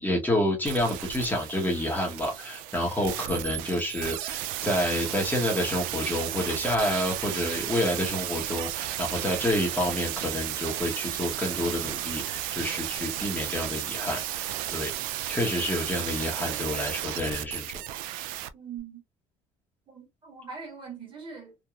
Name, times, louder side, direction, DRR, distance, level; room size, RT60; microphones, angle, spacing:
voice 1, 0.0-14.9 15.3-17.7, left 1 dB, 10° left, 1.0 m, -29 dB
sound 1, 0.7-18.5 18.8-18.9, right 13 dB, 80° right, 0.4 m, -34 dB
voice 2, 18.5-19.0 19.9-21.6, right 6 dB, 35° right, 1.7 m, -42 dB
3.0 x 2.2 x 2.3 m
cardioid pair, 105°, 14 cm